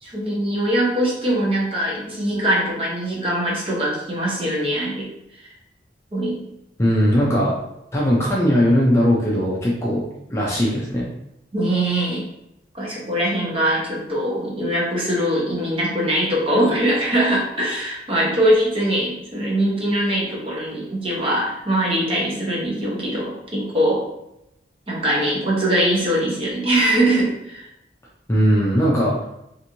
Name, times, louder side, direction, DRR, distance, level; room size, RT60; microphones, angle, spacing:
voice 1, 0.0-5.1 5.4-5.5 6.1-6.4 11.5-12.3 12.7-24.0 24.9-27.7, right 1 dB, 30° right, -4 dB, 0.8 m, -22 dB
voice 2, 6.8-7.6 7.9-11.1 28.3-29.3, equal, 15° left, -5 dB, 0.5 m, -19 dB
2.9 x 2.6 x 2.7 m, 0.83 s
head